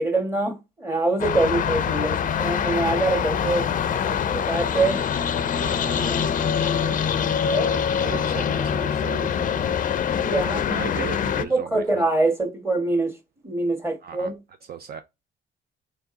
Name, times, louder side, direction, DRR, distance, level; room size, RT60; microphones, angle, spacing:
voice 1, 0.0-5.0 7.4-7.7 10.2-10.6 11.5-13.1 13.4-14.4, right 2 dB, 10° right, 1.6 m, -24 dB
sound 1, 1.2-11.4, left 8 dB, 40° left, 0.4 m, -24 dB
voice 2, 5.5-7.0 7.5-9.8 10.7-12.0 14.0-14.3 14.7-15.0, right 8 dB, 50° right, 0.5 m, -37 dB
3.5 x 3.3 x 3.9 m
cardioid pair, 90°, 20 cm